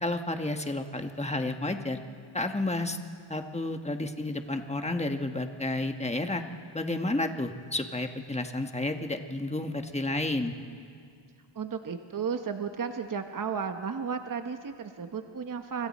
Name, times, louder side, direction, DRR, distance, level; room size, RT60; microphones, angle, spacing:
voice 1, 0.0-2.0 2.3-3.0 3.3-6.4 6.7-10.5, left 2 dB, 15° left, 5 dB, 1.2 m, -31 dB
voice 2, 11.5-15.9, right 6 dB, 40° right, 7 dB, 1.0 m, -34 dB
29.5 x 25.5 x 4.2 m, 2.2 s
wide cardioid pair, 120°, 49 cm